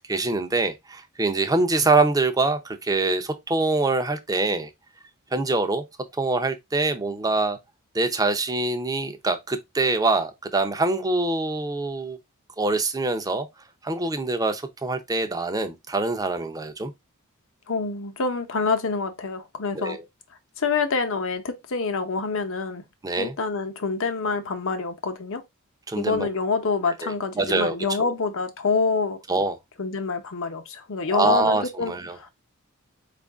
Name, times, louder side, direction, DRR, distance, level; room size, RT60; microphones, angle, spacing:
voice 1, 0.0-4.7 5.3-5.8 6.2-7.6 7.9-12.2 12.6-13.5 13.8-16.9 19.7-20.0 23.0-23.3 25.9-26.3 27.0-28.1 29.3-29.6 31.1-32.2, right 3 dB, 15° right, 0.6 m, -24 dB
voice 2, 17.7-20.0 20.6-22.8 23.2-25.4 26.0-29.2 29.8-32.3, left 4 dB, 60° left, 0.8 m, -26 dB
4.6 x 2.5 x 3.4 m
head